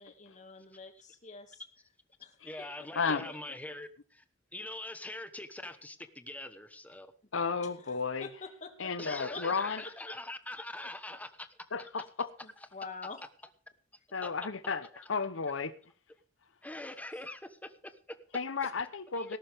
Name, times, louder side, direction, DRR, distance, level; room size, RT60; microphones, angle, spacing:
voice 1, 0.0-1.6 2.2-2.4 2.8-2.9 3.2-3.8 7.6-9.4 9.8-10.1 10.8-10.9 12.4-13.2 17.1-17.2 18.6-18.7, left 4 dB, 40° left, 6 dB, 2.2 m, -47 dB
voice 2, 2.4-4.2 4.5-7.1 9.0-11.5 14.1-14.3 14.9-15.1 16.6-18.2 19.1-19.4, left 1 dB, 10° left, 10 dB, 1.2 m, -43 dB
voice 3, 2.9-3.3 7.3-8.3 8.8-9.8 11.7-12.3 14.1-15.7 18.3-19.4, left 5 dB, 80° left, 12 dB, 1.0 m, -33 dB
18.5 x 11.5 x 3.6 m, 0.36 s
head